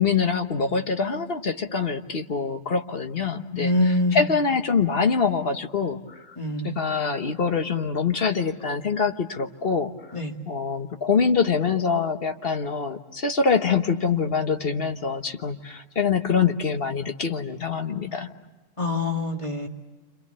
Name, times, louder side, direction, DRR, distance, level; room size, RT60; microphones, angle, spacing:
voice 1, 0.0-6.4 6.6-9.9 10.5-18.3, left 5 dB, 50° left, 7 dB, 1.3 m, -25 dB
voice 2, 3.6-4.3 6.4-6.8 10.1-10.3 18.8-19.7, left 2 dB, 25° left, 3 dB, 2.3 m, -24 dB
29.5 x 26.5 x 6.7 m, 1.2 s
omnidirectional pair, 1.4 m